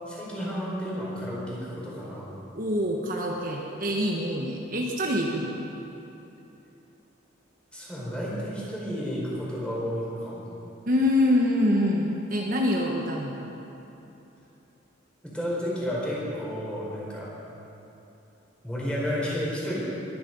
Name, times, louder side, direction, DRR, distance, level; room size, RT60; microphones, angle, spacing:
voice 1, 0.1-2.4 7.7-10.5 15.2-17.3 18.6-19.8, equal, 5° left, -7 dB, 4.6 m, -31 dB
voice 2, 2.5-5.7 10.9-13.5, left 1 dB, 45° right, -1 dB, 1.3 m, -25 dB
22.0 x 11.0 x 5.4 m, 2.9 s
head